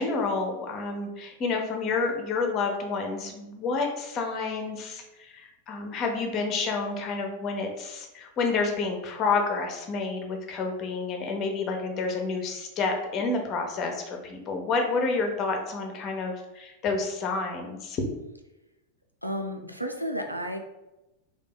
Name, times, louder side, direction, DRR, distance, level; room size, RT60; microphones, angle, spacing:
voice 1, 0.0-18.0, left 4 dB, 35° left, 3 dB, 0.6 m, -29 dB
voice 2, 19.2-20.6, equal, 90° left, 3 dB, 0.3 m, -32 dB
2.8 x 2.2 x 3.8 m, 0.98 s
figure-of-eight pair, 90°, 0 cm